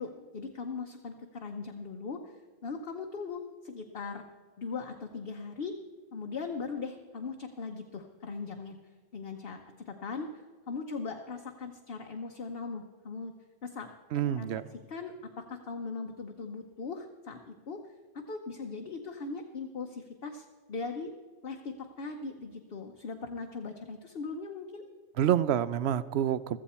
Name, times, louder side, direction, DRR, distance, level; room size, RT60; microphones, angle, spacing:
voice 1, 0.0-2.3 2.6-4.2 4.6-5.8 6.1-8.8 9.1-9.6 9.9-13.3 13.6-13.9 14.1-14.5 14.9-17.8 18.3-21.1 21.4-24.8, left 4 dB, 55° left, 4 dB, 1.0 m, -39 dB
voice 2, 14.1-14.6 25.2-26.6, right 10 dB, 70° right, 16 dB, 0.8 m, -27 dB
15.0 x 14.0 x 4.3 m, 1.4 s
omnidirectional pair, 1.2 m